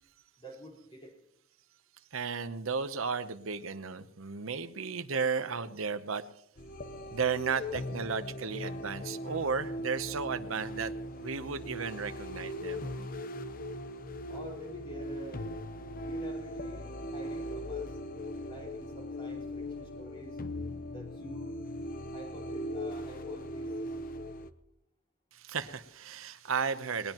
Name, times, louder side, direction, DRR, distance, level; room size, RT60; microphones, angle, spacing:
voice 1, 0.4-1.1 14.3-15.5 16.0-18.0 18.4-20.4 20.9-21.6 22.1-23.9, equal, 25° left, -1 dB, 4.4 m, -48 dB
voice 2, 2.1-6.2 7.1-10.9 11.2-12.8 25.3-27.1, right 5 dB, 75° right, 11 dB, 0.8 m, -34 dB
sound 1, 6.6-24.5, left 1 dB, 45° left, 0.7 m, -39 dB
20.0 x 19.5 x 3.0 m, 0.74 s
head